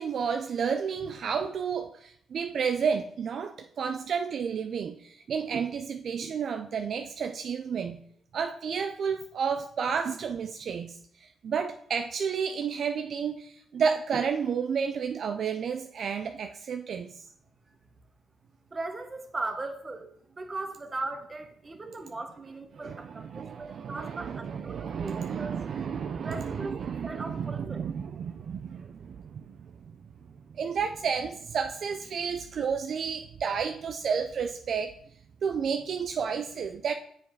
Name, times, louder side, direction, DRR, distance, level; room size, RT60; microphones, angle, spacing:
voice 1, 0.0-8.0 8.3-17.3 22.7-29.7 30.6-34.9 35.4-36.9, right 6 dB, 55° right, 0.4 m, -31 dB
voice 2, 18.7-20.1 20.4-25.5 26.2-27.9, right 2 dB, 25° right, 1.2 m, -38 dB
7.1 x 4.9 x 4.7 m
cardioid pair, 90°, 0 cm